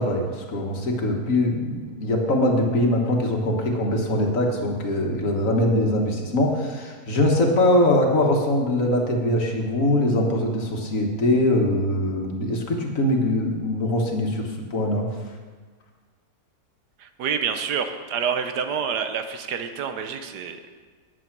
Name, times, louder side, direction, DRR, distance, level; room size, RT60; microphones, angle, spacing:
voice 1, 0.0-15.1, left 1 dB, 55° left, 1 dB, 1.7 m, -22 dB
voice 2, 17.0-20.6, right 7 dB, 80° right, 8 dB, 1.4 m, -28 dB
9.2 x 8.9 x 6.0 m, 1.5 s
omnidirectional pair, 1.7 m